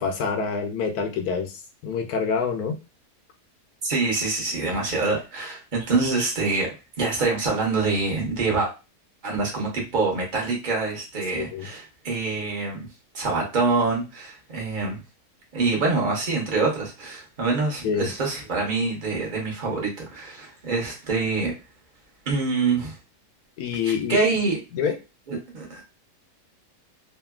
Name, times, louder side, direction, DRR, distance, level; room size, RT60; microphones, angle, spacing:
voice 1, 0.0-2.8 11.3-11.7 17.8-18.1 23.6-24.2 24.7-24.9, left 6 dB, 75° left, 4 dB, 1.1 m, -26 dB
voice 2, 3.8-6.7 7.0-8.7 9.2-12.9 13.1-15.0 15.5-21.5 22.3-23.0 23.8-24.6 25.3-25.8, right 3 dB, 35° right, -1 dB, 0.9 m, -25 dB
2.9 x 2.5 x 2.3 m, 0.28 s
omnidirectional pair, 1.7 m